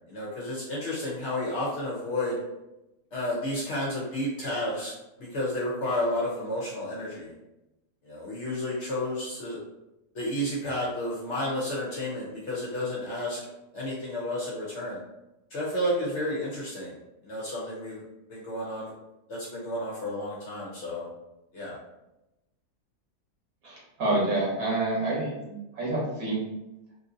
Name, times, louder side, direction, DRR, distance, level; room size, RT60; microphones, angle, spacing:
voice 1, 0.1-2.4 3.1-4.9 5.2-7.3 8.0-9.6 10.1-13.4 13.7-15.0 15.5-17.0 17.2-18.0 18.3-18.9 19.3-21.1 21.5-21.8, left 1 dB, 55° left, -5 dB, 0.9 m, -31 dB
voice 2, 23.6-26.4, right 2 dB, 60° right, -5 dB, 1.5 m, -28 dB
3.5 x 2.6 x 2.6 m, 0.94 s
omnidirectional pair, 1.7 m